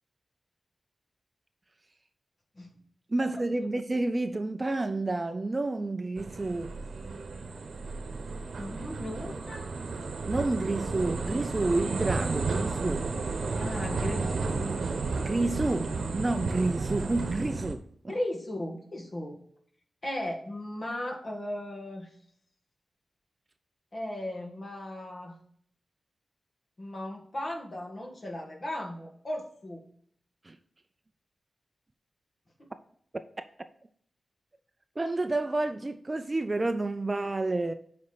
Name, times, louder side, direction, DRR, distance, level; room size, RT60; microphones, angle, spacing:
voice 1, 3.1-6.7 10.3-13.1 15.2-18.1 30.4-30.6 33.1-33.2 33.6-33.7 35.0-37.7, right 2 dB, 25° right, 0.4 m, -30 dB
sound 1, 6.2-17.7, right 4 dB, 70° right, 0.9 m, -33 dB
voice 2, 8.6-9.7 13.6-14.7 18.1-19.4 20.0-22.1 23.9-25.4 26.8-29.8 32.6-32.7, left 1 dB, 35° left, 1.7 m, -36 dB
8.4 x 5.2 x 4.0 m
wide cardioid pair, 150°, 0 cm